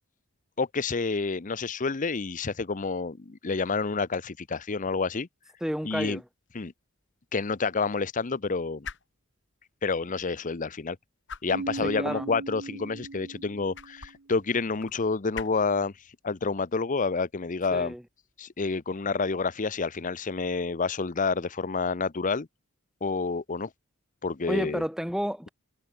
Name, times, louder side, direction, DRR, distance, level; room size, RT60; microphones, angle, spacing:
voice 1, 0.6-5.3 5.8-6.2 6.5-6.7 7.3-8.9 9.8-11.0 11.4-15.9 16.2-17.9 18.4-22.5 23.0-23.7 24.2-24.8, left 4 dB, 40° left, 0.7 m, -29 dB
voice 2, 5.6-6.2 11.8-12.4 17.7-18.0 24.5-25.5, equal, ahead, 3.1 m, -31 dB
sound 1, 5.8-19.4, left 6 dB, 60° left, 6.2 m, -50 dB
Keyboard (musical), 11.5-14.1, right 3 dB, 65° right, 0.9 m, -38 dB
head